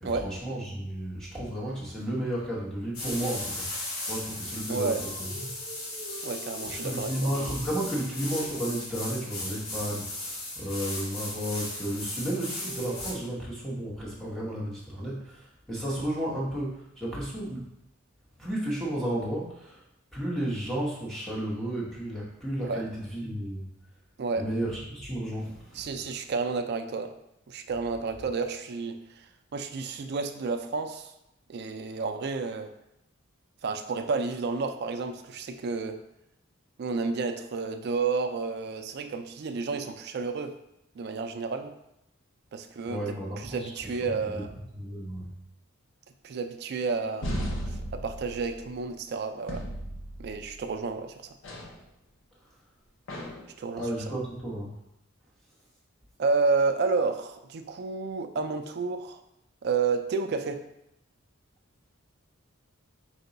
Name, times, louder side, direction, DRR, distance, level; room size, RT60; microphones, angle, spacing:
voice 1, 0.0-5.5 6.6-17.7 18.4-19.8 20.1-23.7 24.3-25.9 42.8-43.7 44.0-44.4 44.7-45.3 53.8-54.8, right 1 dB, ahead, -6 dB, 0.8 m, -33 dB
sound 1, 2.9-13.1, left 2 dB, 85° left, 1.2 m, -36 dB
voice 2, 4.7-5.0 6.2-7.1 22.6-22.8 24.2-24.5 25.7-27.1 27.5-29.2 29.5-31.1 31.5-32.7 33.6-36.0 36.8-40.6 41.0-41.7 42.5-43.0 43.4-44.5 46.2-47.3 47.9-49.6 50.2-51.3 53.6-53.9 56.2-59.2 59.6-60.6, right 4 dB, 50° right, 7 dB, 0.3 m, -30 dB
sound 2, 47.2-48.8 49.5-50.7 51.4-51.8 53.1-53.5, equal, 60° left, 0.7 m, -35 dB
4.7 x 2.2 x 3.9 m, 0.82 s
head